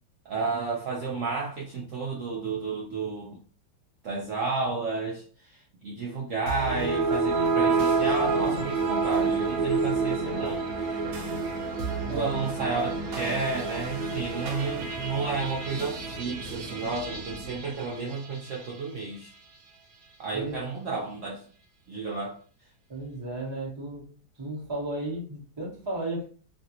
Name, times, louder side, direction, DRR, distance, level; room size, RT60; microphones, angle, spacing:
voice 1, 0.2-3.4 4.0-11.0 12.1-19.3 20.2-21.4 21.9-22.4, right 4 dB, 85° right, 0.6 m, -32 dB
sound 1, 6.5-18.8, right 4 dB, 60° right, 1.1 m, -29 dB
voice 2, 22.9-24.0 24.4-26.3, right 1 dB, 30° right, 0.5 m, -34 dB
3.2 x 2.5 x 2.8 m
omnidirectional pair, 2.1 m